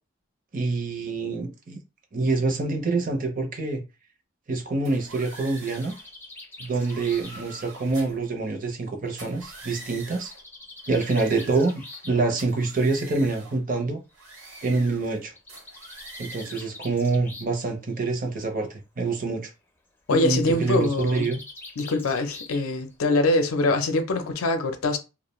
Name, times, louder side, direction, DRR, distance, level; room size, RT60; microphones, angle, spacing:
voice 1, 0.5-1.8 2.1-3.8 4.5-5.9 6.6-10.3 10.9-14.0 14.6-15.3 16.2-19.5 20.1-21.4, right 3 dB, 40° right, 0.5 m, -26 dB
sound 1, 4.8-6.1 6.6-8.3 9.1-10.4 10.8-12.1 12.4-13.6 14.1-15.2 15.5-16.7, right 2 dB, 75° right, 0.9 m, -45 dB
Bird, 5.0-8.8 9.9-12.2 13.3-13.4 13.8-13.9 14.1-14.2 15.2-17.7 18.0-18.4 20.5-22.9, left 2 dB, 10° left, 0.4 m, -45 dB
voice 2, 20.1-21.3 21.8-25.0, left 2 dB, 90° left, 0.5 m, -23 dB
2.4 x 2.0 x 3.0 m
head